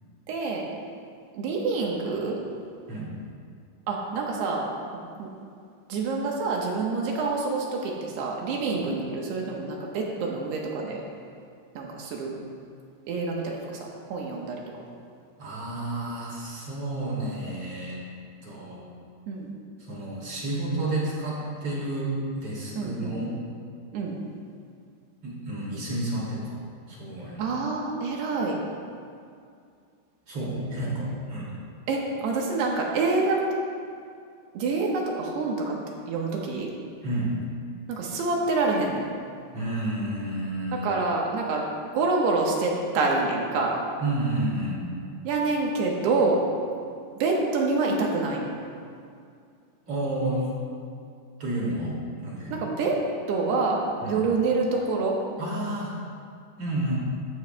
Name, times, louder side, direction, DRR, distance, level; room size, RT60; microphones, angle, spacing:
voice 1, 0.3-0.7 1.3-2.4 3.9-4.7 5.2-5.3 5.9-11.0 11.8-12.4 13.1-14.6 19.3-19.5 22.8-23.2 23.9-24.2 27.4-28.6 31.9-33.4 34.5-35.8 36.1-36.7 37.9-39.1 40.8-41.6 41.9-43.8 45.2-46.4 47.2-48.6 52.5-53.0 53.3-55.2, right 3 dB, 70° right, -1 dB, 3.1 m, -27 dB
voice 2, 15.4-18.0 18.4-18.8 19.8-23.3 25.2-26.6 26.9-27.5 30.3-31.5 37.0-37.4 39.5-41.0 44.0-44.8 49.9-50.5 51.4-52.5 54.0-54.2 55.4-56.0 56.6-57.0, right 1 dB, 40° right, -5 dB, 2.9 m, -30 dB
15.0 x 13.5 x 2.3 m, 2.3 s
omnidirectional pair, 5.2 m